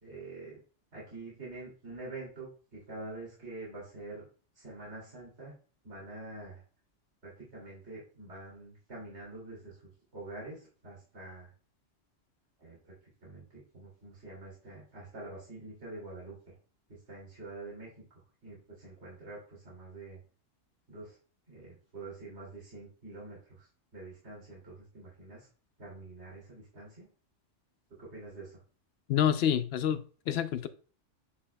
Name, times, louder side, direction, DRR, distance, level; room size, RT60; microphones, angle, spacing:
voice 1, 0.0-0.6 0.9-4.2 4.5-5.5 5.8-6.6 7.2-9.8 10.1-11.5 12.6-12.9 13.2-16.6 16.9-20.2 20.9-21.2 21.5-25.5 25.8-27.1 28.0-28.6, right 2 dB, 65° right, -6 dB, 2.9 m, -46 dB
voice 2, 29.1-30.7, left 9 dB, 65° left, 12 dB, 0.8 m, -28 dB
9.6 x 5.0 x 2.2 m, 0.39 s
omnidirectional pair, 1.2 m